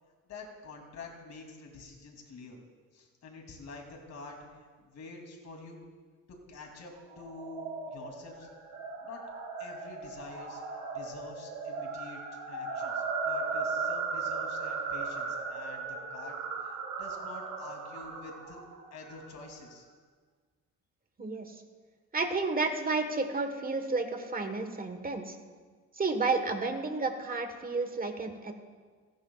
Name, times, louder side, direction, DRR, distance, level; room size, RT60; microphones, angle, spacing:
voice 1, 0.3-2.6 2.9-5.8 6.3-8.5 9.0-9.2 9.6-10.6 10.9-12.2 12.5-18.6 18.9-19.9, left 3 dB, 60° left, 1 dB, 2.9 m, -47 dB
sound 1, 7.1-19.5, right 4 dB, 85° right, 2.9 m, -37 dB
voice 2, 21.2-21.6 22.1-25.4 25.9-28.5, right 3 dB, 30° right, 6 dB, 1.4 m, -31 dB
23.5 x 11.5 x 2.4 m, 1.5 s
cardioid pair, 90°, 30 cm